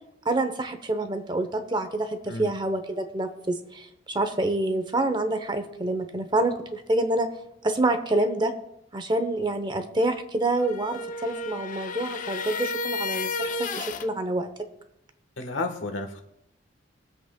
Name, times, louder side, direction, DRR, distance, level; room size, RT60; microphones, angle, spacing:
voice 1, 0.2-7.3 7.6-8.5 8.9-14.5, right 2 dB, 25° right, 8 dB, 0.7 m, -27 dB
sound 1, 10.5-14.1, left 3 dB, 40° left, 0.5 m, -32 dB
voice 2, 15.4-16.2, left 3 dB, 80° left, 6 dB, 1.2 m, -31 dB
22.0 x 7.9 x 2.2 m, 0.83 s
head